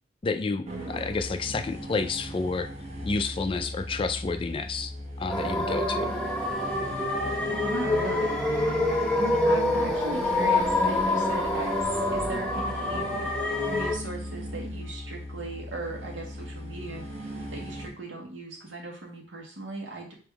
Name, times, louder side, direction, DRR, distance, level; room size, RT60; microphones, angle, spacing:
voice 1, 0.2-2.7 3.0-4.9 5.2-6.1, left 4 dB, 30° left, 7 dB, 0.3 m, -30 dB
sound 1, 0.7-17.9, equal, 35° right, 1.1 m, -38 dB
sound 2, 5.3-13.9, left 2 dB, 5° left, 0.8 m, -26 dB
voice 2, 7.6-8.4 9.2-13.1 13.6-17.1 17.5-20.1, right 2 dB, 85° right, -2 dB, 1.5 m, -37 dB
3.5 x 3.0 x 4.6 m, 0.42 s
head